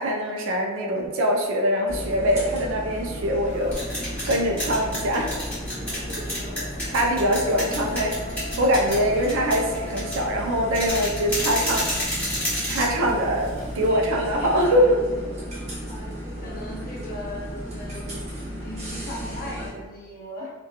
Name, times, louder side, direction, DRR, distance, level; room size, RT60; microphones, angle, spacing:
voice 1, 0.0-5.3 6.9-11.9 12.7-15.1, equal, 65° right, 1 dB, 0.4 m, -23 dB
sound 1, 1.9-19.7, equal, 35° right, 0.7 m, -35 dB
sound 2, 3.5-13.9, equal, 5° left, 1.1 m, -31 dB
Wind instrument woodwind instrument, 6.8-11.4, left 1 dB, 85° left, 0.4 m, -41 dB
voice 2, 15.5-18.2 18.6-20.5, left 1 dB, 40° left, -4 dB, 0.6 m, -38 dB
2.9 x 2.2 x 2.3 m, 1.3 s
head